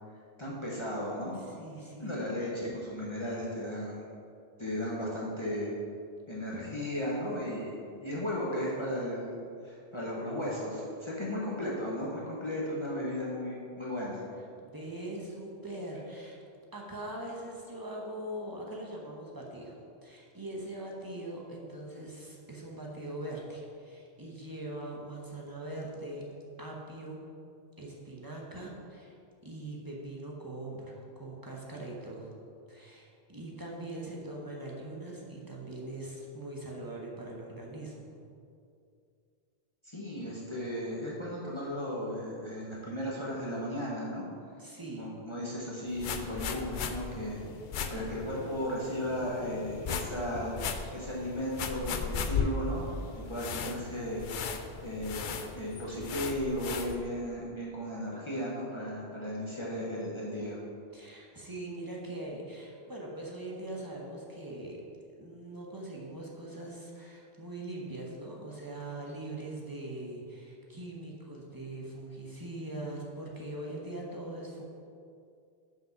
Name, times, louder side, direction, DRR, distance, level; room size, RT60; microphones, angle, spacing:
voice 1, 0.4-1.4 2.0-4.1 4.6-5.7 6.3-14.2 39.8-44.3 45.0-47.4 47.9-54.2 54.8-60.6, equal, 30° left, -6 dB, 1.1 m, -35 dB
voice 2, 1.6-2.2 14.6-16.4 16.7-19.8 20.0-26.3 26.6-27.2 27.8-29.1 29.4-32.3 32.7-38.1 44.6-45.1 60.9-64.8 65.2-74.6, right 1 dB, 20° right, -2 dB, 1.0 m, -41 dB
sound 1, 45.9-57.0, left 6 dB, 60° left, 0.6 m, -37 dB
6.0 x 5.1 x 5.8 m, 2.4 s
omnidirectional pair, 1.1 m